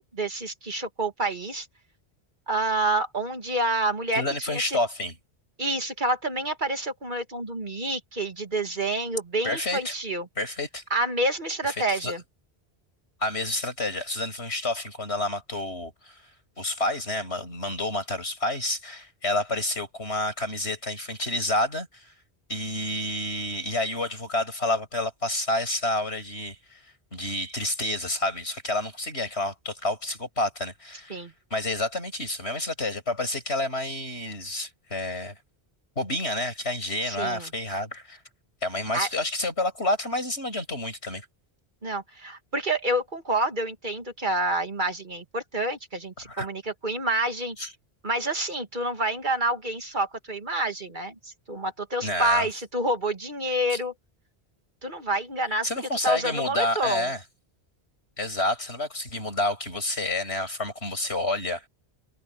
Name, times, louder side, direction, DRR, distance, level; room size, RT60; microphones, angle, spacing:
voice 1, 0.0-1.7 2.5-4.8 5.6-10.3 10.9-12.2 31.1-31.3 37.0-37.5 38.9-39.1 41.8-47.6 48.0-53.9 54.8-55.7 56.0-57.1, right 1 dB, 50° right, 2.4 m, -28 dB
voice 2, 4.1-5.2 9.4-9.9 10.4-10.8 11.6-12.1 13.2-16.2 16.6-22.1 22.5-26.8 27.1-31.2 31.5-35.4 36.0-38.2 38.6-41.3 46.3-46.5 47.6-47.7 52.0-52.5 53.7-53.8 55.6-57.2 58.2-61.7, left 1 dB, 90° left, 7.5 m, -29 dB
omnidirectional pair, 1.1 m